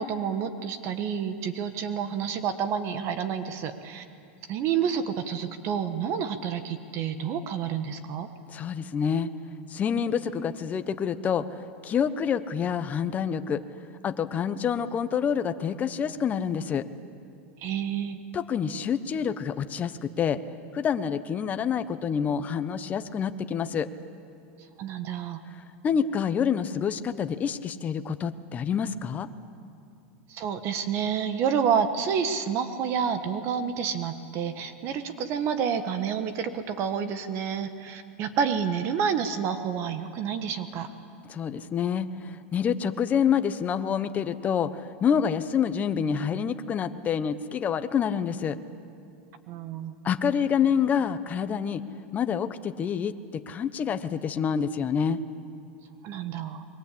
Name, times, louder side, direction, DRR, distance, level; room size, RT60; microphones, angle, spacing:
voice 1, 0.0-4.0 4.5-8.3 17.6-18.2 24.8-25.4 30.3-40.9 49.5-49.9 56.0-56.6, right 7 dB, 40° right, 9 dB, 1.4 m, -29 dB
voice 2, 8.5-9.3 9.7-11.5 11.8-13.6 14.0-16.8 18.3-20.4 20.7-23.9 25.8-29.3 41.3-48.6 50.0-51.8 52.1-55.2, left 7 dB, 25° left, 10 dB, 1.0 m, -27 dB
28.5 x 22.5 x 8.6 m, 2.5 s
supercardioid pair, 140°, 7 cm